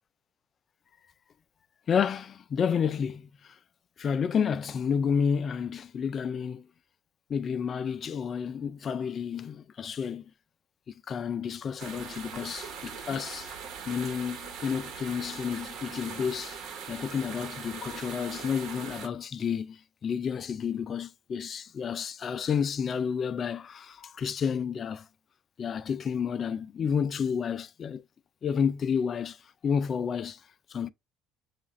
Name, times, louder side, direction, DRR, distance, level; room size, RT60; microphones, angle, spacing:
voice 1, 1.9-3.3 4.0-6.6 7.3-10.2 11.1-13.5 13.9-16.6 16.9-19.8 20.0-25.0 25.6-28.0 28.4-29.4 29.6-30.4 30.7-30.9, left 7 dB, 35° left, 0.3 m, -30 dB
Mountain Stream, 11.8-19.1, right 6 dB, 50° right, 1.1 m, -41 dB
7.2 x 2.4 x 2.5 m
cardioid pair, 140°, 0 cm